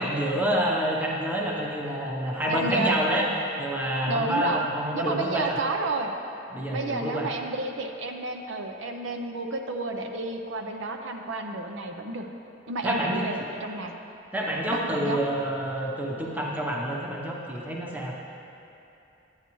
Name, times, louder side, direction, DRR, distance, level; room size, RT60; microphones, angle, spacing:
voice 1, 0.0-3.3 3.6-5.6 6.5-7.3 12.8-13.3 14.3-18.1, equal, 10° right, -3 dB, 0.7 m, -28 dB
voice 2, 2.5-3.0 4.1-4.6 4.9-6.1 6.7-12.3 12.7-13.9 14.7-15.2, right 2 dB, 80° right, 4 dB, 0.6 m, -31 dB
9.6 x 9.1 x 3.0 m, 2.9 s
head